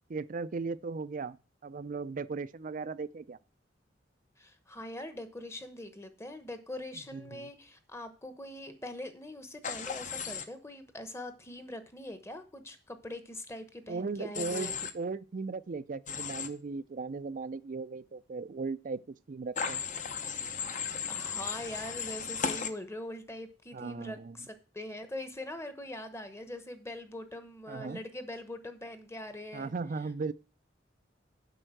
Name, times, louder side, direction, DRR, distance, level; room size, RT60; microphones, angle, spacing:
voice 1, 0.1-1.4 1.6-3.4 7.1-7.5 13.9-19.8 23.7-24.4 27.7-28.0 29.5-30.3, right 4 dB, 45° right, 0.4 m, -37 dB
voice 2, 4.4-14.8 21.1-29.7, left 1 dB, 15° left, 1.0 m, -42 dB
Human voice / Train, 9.6-10.4 14.3-14.9 16.1-16.5 19.6-22.7, left 6 dB, 40° left, 0.8 m, -35 dB
7.9 x 5.5 x 7.6 m
head